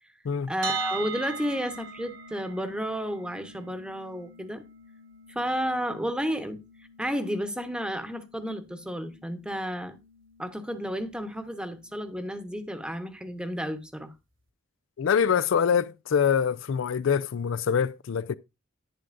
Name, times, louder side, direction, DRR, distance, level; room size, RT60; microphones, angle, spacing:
voice 1, 0.5-4.6 5.3-6.6 7.0-10.0 10.4-14.1, equal, 5° right, 0.9 m, -32 dB
sound 1, 0.6-12.5, right 5 dB, 65° right, 1.5 m, -42 dB
voice 2, 15.0-18.4, left 7 dB, 75° left, 0.4 m, -25 dB
11.0 x 9.7 x 2.5 m
head